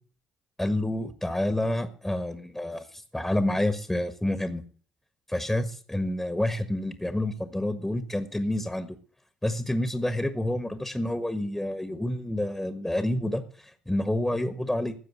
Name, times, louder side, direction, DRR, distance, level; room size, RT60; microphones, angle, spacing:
voice 1, 0.6-4.6 5.3-9.0 9.4-14.9, left 1 dB, 10° left, 10 dB, 1.5 m, -28 dB
13.0 x 7.6 x 7.8 m, 0.43 s
hypercardioid pair, 55°, 3 cm